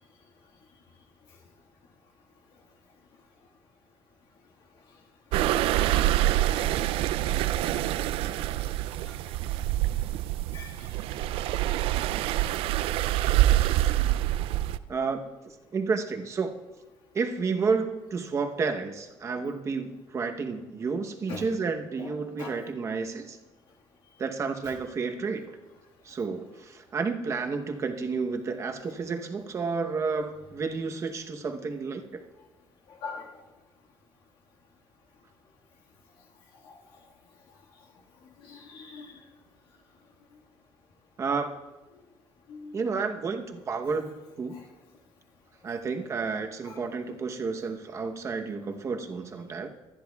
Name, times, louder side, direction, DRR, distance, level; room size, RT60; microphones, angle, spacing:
sound 1, 5.3-14.8, right 14 dB, 85° right, 0.4 m, -26 dB
voice 1, 14.9-15.3 15.7-16.5 17.1-23.4 24.2-25.4 26.0-32.2 41.2-41.6 42.7-44.1 44.4-44.6 45.6-49.7, right 4 dB, 30° right, 5 dB, 0.9 m, -31 dB
voice 2, 22.0-22.7 32.9-33.3 36.6-36.8 38.4-39.2 42.5-42.8 44.5-44.7 46.6-46.8, left 4 dB, 70° left, -1 dB, 1.7 m, -42 dB
23.5 x 10.0 x 2.3 m, 1.1 s
cardioid pair, 145°, 9 cm